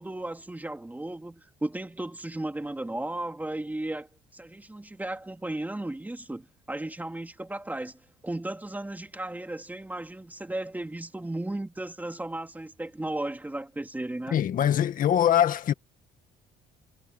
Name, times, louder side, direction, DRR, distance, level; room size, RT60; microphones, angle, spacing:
voice 1, 0.0-14.4, right 1 dB, 10° right, 3.3 m, -35 dB
voice 2, 14.3-15.7, left 10 dB, 55° left, 1.8 m, -23 dB
cardioid pair, 110°, 17 cm